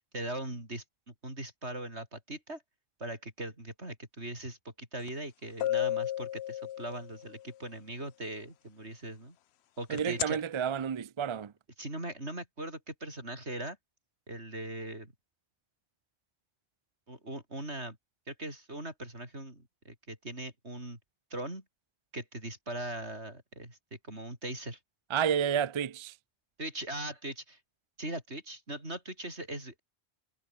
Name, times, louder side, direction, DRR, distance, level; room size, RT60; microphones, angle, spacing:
voice 1, 0.1-2.6 3.0-9.4 9.8-10.4 11.8-13.8 14.3-15.1 17.1-18.0 18.3-21.0 21.3-21.6 22.1-24.8 26.6-27.6 28.0-29.8, right 1 dB, 70° right, 7.7 m, -40 dB
sound 1, 5.1-5.2 5.6-7.3 10.0-10.3, left 12 dB, 70° left, 0.8 m, -32 dB
voice 2, 9.9-11.5 25.1-26.1, right 8 dB, 45° right, 0.4 m, -30 dB
omnidirectional pair, 1.2 m